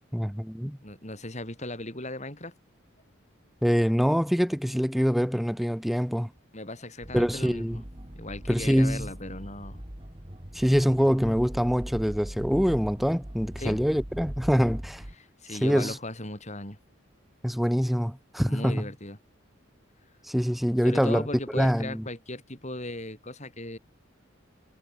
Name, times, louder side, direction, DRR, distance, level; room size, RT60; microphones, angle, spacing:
voice 1, 0.1-0.8 3.6-6.3 7.1-7.8 8.5-9.1 10.5-15.0 15.6-16.0 17.4-18.9 20.2-21.3 21.5-22.0, equal, ahead, 2.0 m, -25 dB
voice 2, 0.8-2.5 6.5-7.8 8.2-9.8 13.6-13.8 15.2-16.8 18.5-19.2 20.8-23.8, left 1 dB, 35° left, 8.0 m, -37 dB
sound 1, 7.0-15.2, equal, 25° right, 2.3 m, -40 dB
head